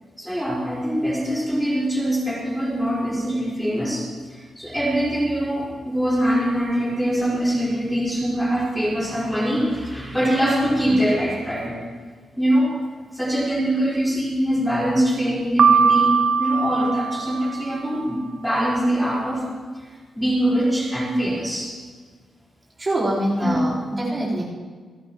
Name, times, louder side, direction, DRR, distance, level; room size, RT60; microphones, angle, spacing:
voice 1, 0.2-11.8 12.4-12.7 13.1-19.5 20.2-21.8 23.4-23.6, equal, ahead, -5 dB, 4.4 m, -23 dB
Piano, 15.6-17.7, right 6 dB, 50° right, 0.6 m, -19 dB
voice 2, 22.8-24.4, right 1 dB, 25° right, -7 dB, 3.9 m, -24 dB
27.5 x 12.0 x 3.0 m, 1.6 s
cardioid pair, 120°, 0 cm